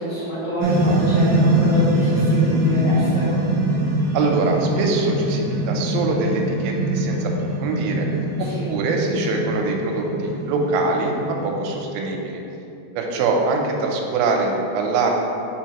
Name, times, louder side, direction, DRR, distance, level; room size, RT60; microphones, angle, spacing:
voice 1, 0.0-3.3 8.4-8.7, right 1 dB, 80° left, -11 dB, 1.6 m, -26 dB
sound 1, 0.6-12.0, right 1 dB, 75° right, 2.3 m, -22 dB
voice 2, 4.1-8.1 8.4-12.4 13.0-15.1, right 3 dB, 90° right, 1 dB, 3.1 m, -23 dB
6.4 x 5.1 x 2.9 m, 2.8 s
omnidirectional pair, 5.3 m